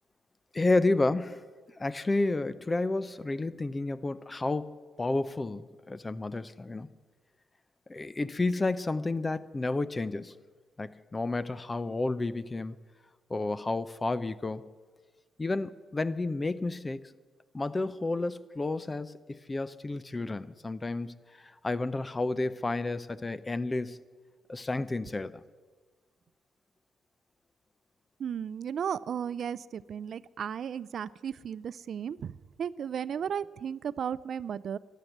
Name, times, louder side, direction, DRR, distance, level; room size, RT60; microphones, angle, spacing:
voice 1, 0.5-1.4 1.8-6.9 7.9-10.3 10.8-12.8 13.3-14.7 15.4-17.0 17.5-24.0 24.5-25.3, left 2 dB, 20° left, 16 dB, 0.6 m, -31 dB
voice 2, 28.2-34.8, right 8 dB, 60° right, 18 dB, 0.4 m, -35 dB
13.0 x 11.0 x 7.9 m, 1.4 s
cardioid pair, 90°, 0 cm